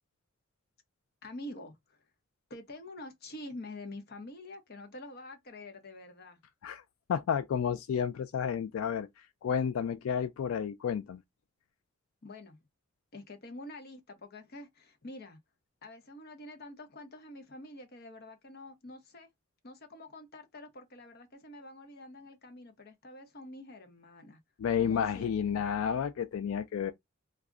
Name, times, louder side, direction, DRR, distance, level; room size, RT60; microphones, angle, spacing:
voice 1, 1.2-2.0 2.5-6.4 12.2-12.6 13.1-15.4 15.8-19.3 19.6-24.4 24.8-25.6, left 1 dB, 50° left, 0.7 m, -47 dB
voice 2, 7.1-9.1 9.4-11.2 24.6-26.9, left 7 dB, 90° left, 0.3 m, -31 dB
2.3 x 2.0 x 3.6 m
head